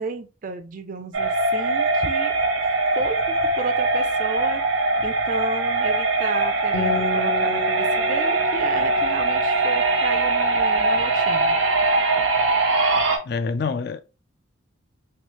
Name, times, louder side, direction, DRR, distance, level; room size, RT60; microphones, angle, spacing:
voice 1, 0.0-2.3 3.0-4.6 5.0-11.6, right 4 dB, 40° right, 0.3 m, -33 dB
sound 1, 1.1-13.2, right 2 dB, 85° right, 0.8 m, -21 dB
Acoustic guitar, 6.7-10.5, left 4 dB, 75° left, 0.8 m, -33 dB
voice 2, 13.2-14.0, left 4 dB, 55° left, 0.3 m, -26 dB
3.2 x 2.3 x 2.9 m
head